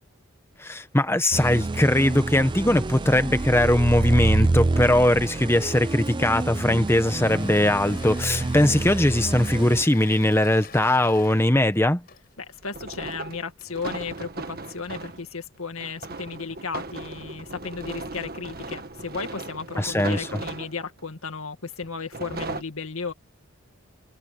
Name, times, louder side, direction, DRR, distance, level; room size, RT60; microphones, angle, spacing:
voice 1, 0.6-12.0 19.8-20.3, left 1 dB, 10° left, 1.1 m, -20 dB
sound 1, 1.3-9.8, right 2 dB, 20° right, 0.4 m, -27 dB
Engine / Mechanisms, 6.7-15.1, left 4 dB, 45° left, 5.5 m, -46 dB
voice 2, 12.4-23.1, left 5 dB, 75° left, 2.0 m, -34 dB
sound 2, 12.6-15.2 15.8-21.0 21.8-22.6, right 2 dB, 45° right, 1.6 m, -37 dB
head